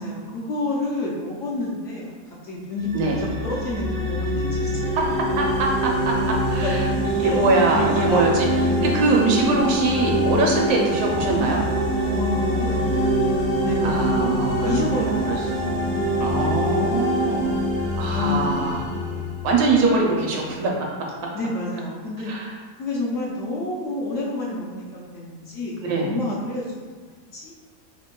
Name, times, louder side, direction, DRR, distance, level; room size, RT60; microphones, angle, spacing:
voice 1, 0.0-4.9 6.6-6.7 7.2-7.4 8.1-8.3 8.9-9.3 12.1-14.1 14.6-15.2 15.6-16.2 18.1-19.4 21.3-22.3 22.8-26.9 27.3-27.5, left 2 dB, 65° left, -5 dB, 0.8 m, -30 dB
sound 1, 2.8-19.9, left 2 dB, 55° right, 0.4 m, -28 dB
sound 2, 4.6-19.3, right 2 dB, 90° left, 1.4 m, -26 dB
voice 2, 5.0-6.8 7.2-11.6 13.8-15.4 16.2-17.4 18.0-18.8 19.4-20.7 21.0-21.1 22.3-22.5 25.8-26.1, right 3 dB, 75° right, -1 dB, 1.1 m, -23 dB
3.6 x 3.6 x 2.2 m, 1.4 s
omnidirectional pair, 1.7 m